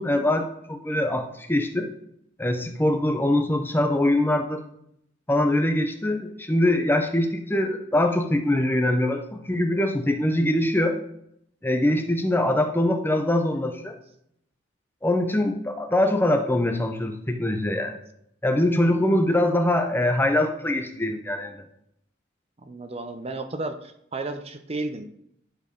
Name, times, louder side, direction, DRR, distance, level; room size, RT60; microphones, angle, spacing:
voice 1, 0.0-1.9 2.4-4.6 5.3-11.0 11.6-13.9 15.0-18.0 18.4-21.6, left 1 dB, 10° left, 6 dB, 0.7 m, -23 dB
voice 2, 22.6-25.1, right 2 dB, 30° right, 8 dB, 0.7 m, -33 dB
11.5 x 4.5 x 5.2 m, 0.74 s
head